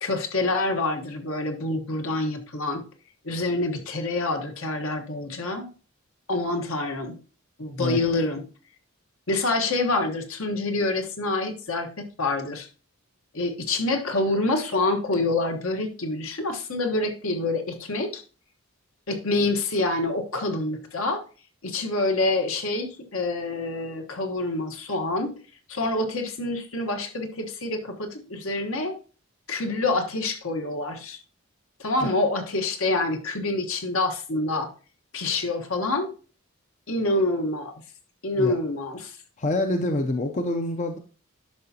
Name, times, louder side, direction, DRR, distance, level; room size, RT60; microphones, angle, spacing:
voice 1, 0.0-2.8 3.2-5.7 6.3-7.1 7.6-8.4 9.3-12.7 13.3-18.2 19.1-21.2 21.6-25.3 25.7-29.0 29.5-31.2 31.8-34.7 35.1-36.1 36.9-37.7 38.2-39.2, left 2 dB, 70° left, 4 dB, 1.3 m, -26 dB
voice 2, 39.4-41.0, left 1 dB, 35° left, 6 dB, 0.5 m, -26 dB
10.5 x 5.8 x 2.8 m, 0.36 s
head